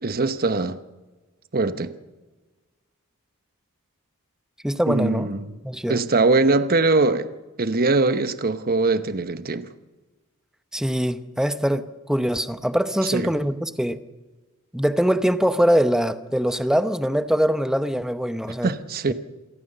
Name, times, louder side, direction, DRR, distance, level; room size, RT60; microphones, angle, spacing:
voice 1, 0.0-0.8 1.5-1.9 4.9-5.6 5.9-7.3 7.6-9.7 13.1-13.3 18.6-19.1, right 3 dB, 45° right, 1.0 m, -22 dB
voice 2, 4.6-5.3 5.6-6.0 10.7-14.0 14.7-18.7, equal, 5° right, 0.8 m, -23 dB
27.5 x 14.0 x 6.8 m
head